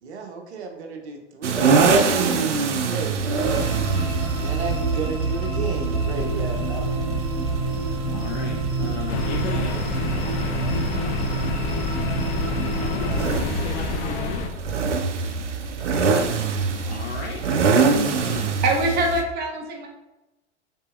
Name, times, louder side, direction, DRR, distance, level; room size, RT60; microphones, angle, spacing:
voice 1, 0.0-3.3 4.4-7.2, right 4 dB, 65° right, 3 dB, 1.0 m, -33 dB
sound 1, 1.4-19.2, right 4 dB, 90° right, 0.6 m, -25 dB
sound 2, 3.3-13.3, right 3 dB, ahead, 1.3 m, -27 dB
voice 2, 8.1-10.0 12.8-14.5 16.8-18.5, left 5 dB, 65° left, 0 dB, 0.6 m, -34 dB
sound 3, 9.1-14.5, left 4 dB, 20° left, 0.4 m, -29 dB
voice 3, 18.6-19.9, right 2 dB, 30° right, 2 dB, 0.9 m, -23 dB
5.5 x 3.6 x 2.5 m, 1.0 s
hypercardioid pair, 105°, 35 cm